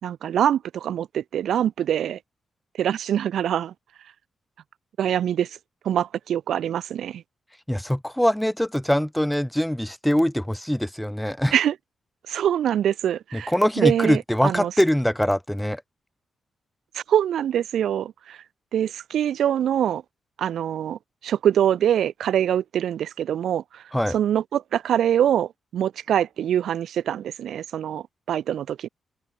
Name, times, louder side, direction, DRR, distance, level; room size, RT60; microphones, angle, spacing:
voice 1, 0.0-2.2 2.8-3.7 5.0-5.6 5.8-7.2 11.5-11.8 12.3-14.7 16.9-18.4 18.7-20.0 20.4-23.8 24.1-28.9, right 10 dB, 80° right, 2.9 m, -24 dB
voice 2, 7.7-11.5 13.3-15.8 23.9-24.2, equal, 5° left, 0.6 m, -23 dB
open air
wide cardioid pair, 135°, 0 cm